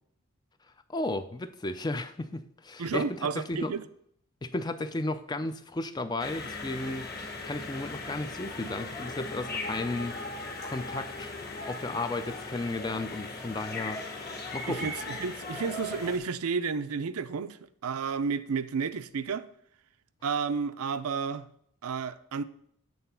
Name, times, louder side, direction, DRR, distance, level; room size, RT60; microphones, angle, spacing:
voice 1, 0.9-3.7 4.4-7.1 7.4-10.2 10.6-11.4 11.7-14.1 14.5-14.9, left 2 dB, 20° left, 0.3 m, -34 dB
voice 2, 2.8-3.8 14.7-19.5 20.2-21.5 21.8-22.4, right 5 dB, 85° right, 0.5 m, -31 dB
sound 1, 6.2-16.2, left 2 dB, 45° left, 1.7 m, -38 dB
7.8 x 4.0 x 6.8 m
head